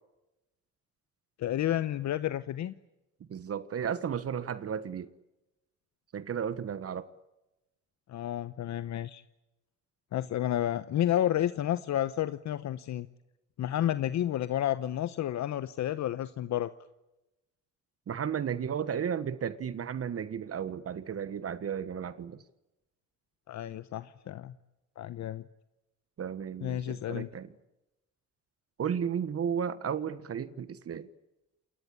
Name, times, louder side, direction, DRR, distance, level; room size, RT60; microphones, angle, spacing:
voice 1, 1.4-2.7 8.1-9.2 10.1-13.1 13.6-16.7 23.5-24.5 25.0-25.4 26.6-27.3, left 12 dB, 65° left, 0.9 m, -31 dB
voice 2, 3.3-5.1 6.1-7.1 18.1-22.4 26.2-27.5 28.8-31.1, right 8 dB, 50° right, 1.3 m, -34 dB
27.5 x 20.5 x 8.6 m
cardioid pair, 90°, 30 cm